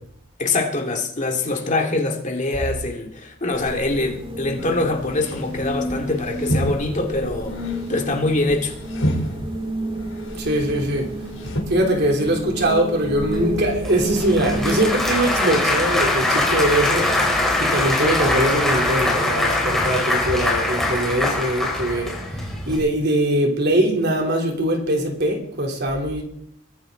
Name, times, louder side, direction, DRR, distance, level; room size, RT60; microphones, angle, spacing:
voice 1, 0.4-7.6 7.9-8.7, left 2 dB, 40° left, 2.3 m, -24 dB
sound 1, 3.5-14.9, equal, 25° right, 2.0 m, -30 dB
sound 2, 4.6-4.9 5.1-11.6, equal, 85° left, 3.5 m, -30 dB
voice 2, 10.4-11.1 11.4-17.3 17.6-22.2 22.7-26.2, right 1 dB, 55° right, 3.4 m, -22 dB
Applause / Crowd, 13.2-22.8, left 1 dB, ahead, 4.4 m, -22 dB
22.5 x 14.0 x 3.9 m
head